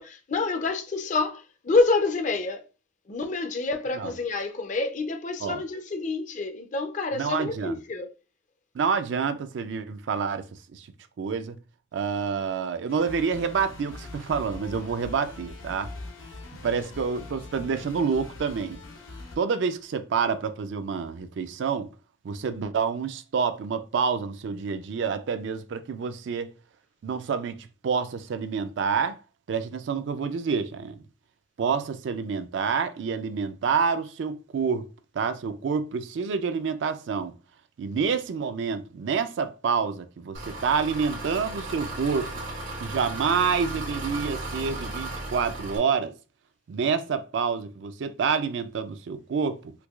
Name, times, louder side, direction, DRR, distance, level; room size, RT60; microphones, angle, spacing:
voice 1, 0.0-2.6 3.1-8.1, left 3 dB, 40° left, 0.4 m, -27 dB
voice 2, 7.1-7.8 8.7-10.5 10.7-10.9 11.2-11.6 11.9-15.9 16.6-18.8 19.4-21.9 22.2-26.5 27.0-29.2 29.5-31.0 31.6-34.9 35.2-37.3 37.8-42.3 42.8-46.1 46.7-49.7, right 5 dB, 65° right, 0.3 m, -28 dB
sound 1, 12.9-19.4, left 2 dB, 80° left, 0.7 m, -42 dB
Engine, 40.3-45.8, right 2 dB, 90° right, 1.2 m, -35 dB
4.5 x 2.2 x 2.3 m
head